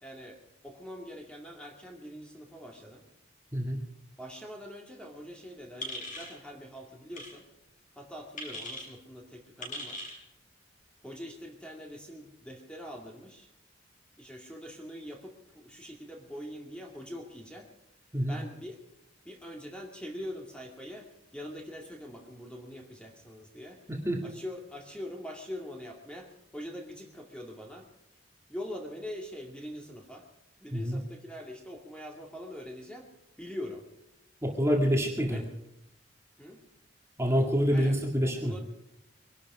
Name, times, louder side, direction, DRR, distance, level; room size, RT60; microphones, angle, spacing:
voice 1, 0.0-3.0 4.2-7.4 8.0-10.1 11.0-13.5 14.2-17.7 18.3-18.8 19.2-23.8 24.2-27.9 28.5-30.2 30.6-33.1 33.4-33.9 35.3-35.5 36.4-36.6 37.7-38.6, equal, 5° left, 0 dB, 2.3 m, -43 dB
sound 1, 5.8-6.3 7.1-7.3 8.4-8.9 9.6-10.2, left 1 dB, 45° left, 6.1 m, -39 dB
voice 2, 34.4-35.4 37.2-38.5, equal, 15° right, 1 dB, 2.2 m, -26 dB
23.0 x 12.0 x 4.9 m, 0.84 s
head